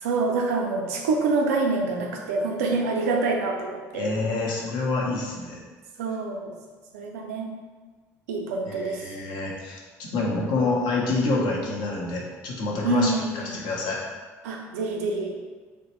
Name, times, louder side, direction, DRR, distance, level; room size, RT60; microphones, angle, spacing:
voice 1, 0.0-4.1 6.0-6.5 6.9-7.5 8.3-9.0 12.8-13.5 14.4-15.4, right 3 dB, 85° right, 1 dB, 0.4 m, -26 dB
voice 2, 3.9-5.6 8.6-14.0, left 3 dB, 70° left, -2 dB, 0.7 m, -27 dB
3.0 x 2.1 x 3.0 m, 1.4 s
hypercardioid pair, 70°, 8 cm